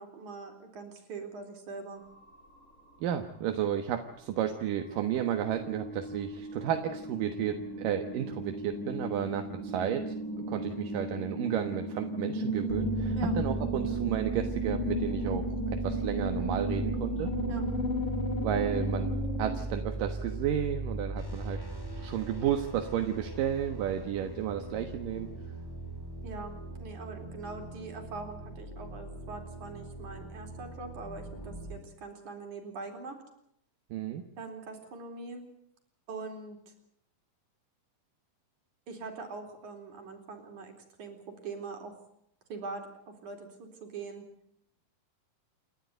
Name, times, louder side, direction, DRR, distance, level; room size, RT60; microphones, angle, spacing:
voice 1, 0.0-2.0 13.2-13.3 17.5-17.6 26.2-33.2 34.4-35.4 36.1-36.6 38.9-40.7 41.0-42.0 42.5-44.3, right 4 dB, 65° right, 4 dB, 5.2 m, -42 dB
sound 1, 2.0-3.1 3.5-19.6, right 1 dB, 75° left, 7.1 m, -35 dB
voice 2, 3.0-10.1 10.5-17.3 18.4-21.6 22.0-25.3 33.9-34.2, right 10 dB, 80° right, 6 dB, 3.0 m, -32 dB
sound 2, 12.7-31.8, right 1 dB, 5° left, 2.5 m, -38 dB
29.0 x 13.0 x 9.3 m, 0.73 s
omnidirectional pair, 3.8 m